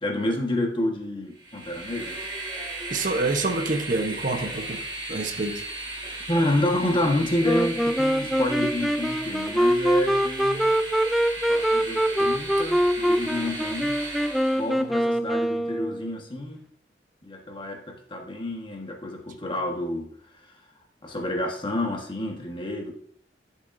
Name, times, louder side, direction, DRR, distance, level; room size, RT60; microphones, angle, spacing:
voice 1, 0.0-2.2 6.3-10.7 11.5-14.0 14.5-16.6 17.2-20.1 21.0-22.9, left 1 dB, 30° left, 1 dB, 1.4 m, -29 dB
Train, 1.4-14.8, right 2 dB, 25° right, 1.6 m, -36 dB
voice 2, 2.9-4.8 5.1-5.6, right 3 dB, 50° right, 5 dB, 0.9 m, -27 dB
Wind instrument woodwind instrument, 7.4-16.2, equal, ahead, 0.3 m, -24 dB
11.0 x 7.1 x 2.6 m, 0.62 s
head